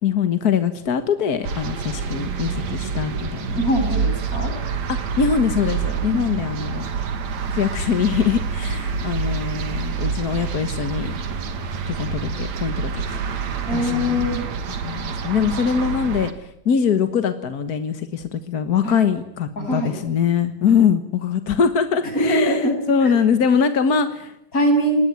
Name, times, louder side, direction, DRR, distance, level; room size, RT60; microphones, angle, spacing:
voice 1, 0.0-3.4 4.9-6.8 7.5-11.2 11.9-13.2 13.7-14.2 14.8-22.6 22.9-24.3, left 7 dB, 45° left, 9 dB, 1.3 m, -22 dB
sound 1, 1.4-16.3, right 5 dB, 65° right, 3.3 m, -27 dB
voice 2, 3.6-4.5 6.1-6.4 13.7-14.5 18.8-19.0 19.6-19.9 22.0-23.1 24.5-25.0, equal, 25° left, 4 dB, 7.4 m, -22 dB
27.5 x 20.5 x 9.5 m, 0.79 s
omnidirectional pair, 3.4 m